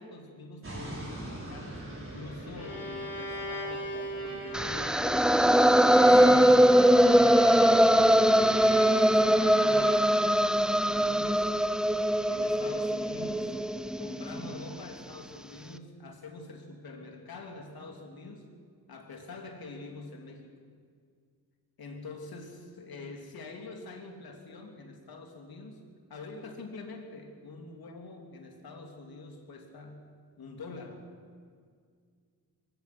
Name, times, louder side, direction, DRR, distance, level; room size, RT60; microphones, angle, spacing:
voice 1, 0.0-5.5 6.0-7.1 7.8-11.5 12.3-13.6 14.0-18.5 18.9-20.6 21.8-25.8 26.1-30.0 30.4-31.0, left 3 dB, 75° left, 3 dB, 3.1 m, -45 dB
sound 1, 0.6-12.6, right 1 dB, 35° right, 5.3 m, -47 dB
Bowed string instrument, 2.5-10.3, equal, 40° left, 4.9 m, -39 dB
sound 2, 4.5-14.6, equal, ahead, 0.5 m, -22 dB
22.5 x 19.0 x 6.2 m, 2.1 s
wide cardioid pair, 110°, 36 cm